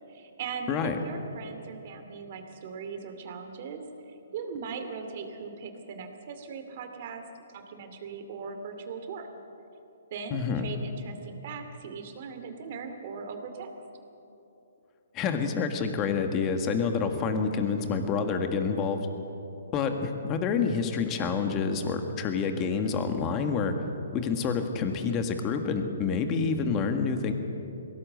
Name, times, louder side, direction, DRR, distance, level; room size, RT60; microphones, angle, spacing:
voice 1, 0.1-7.2 7.5-9.3 10.1-13.7, right 5 dB, 45° right, 6 dB, 2.5 m, -39 dB
voice 2, 0.7-1.0 10.3-10.7 15.1-19.1 19.7-23.7 24.1-27.3, left 5 dB, 20° left, 6 dB, 1.7 m, -28 dB
20.5 x 17.5 x 7.9 m, 3.0 s
hypercardioid pair, 155°, 0 cm